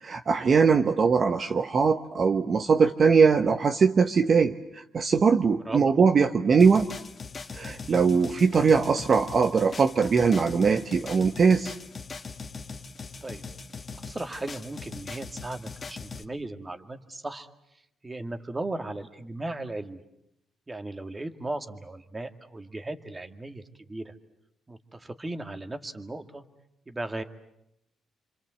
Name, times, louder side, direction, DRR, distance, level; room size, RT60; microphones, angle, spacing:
voice 1, 0.0-6.9 7.5-11.7, right 5 dB, 45° right, 7 dB, 1.0 m, -21 dB
voice 2, 5.5-5.9 13.2-13.4 14.0-17.5 18.0-20.0 20.7-23.6 23.9-24.1 24.7-26.4 26.9-27.2, right 2 dB, 20° right, 7 dB, 2.1 m, -36 dB
sound 1, 6.6-16.2, left 4 dB, 35° left, 1.7 m, -40 dB
28.0 x 25.5 x 7.7 m, 0.83 s
cardioid pair, 90°, 0 cm